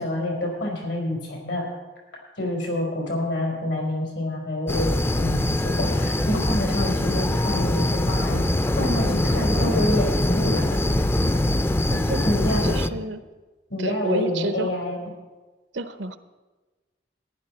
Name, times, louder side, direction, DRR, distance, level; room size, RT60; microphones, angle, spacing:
voice 1, 0.0-1.7 2.4-4.9 5.2-8.5 8.8-10.6 12.2-13.0 13.7-15.0, left 1 dB, 90° left, -1 dB, 4.5 m, -27 dB
sound 1, 4.7-12.9, left 1 dB, 15° left, 0.4 m, -23 dB
voice 2, 11.9-12.2 12.6-13.2 13.8-14.7 15.7-16.2, right 2 dB, 85° right, 11 dB, 0.8 m, -30 dB
14.5 x 11.0 x 4.3 m, 1.2 s
head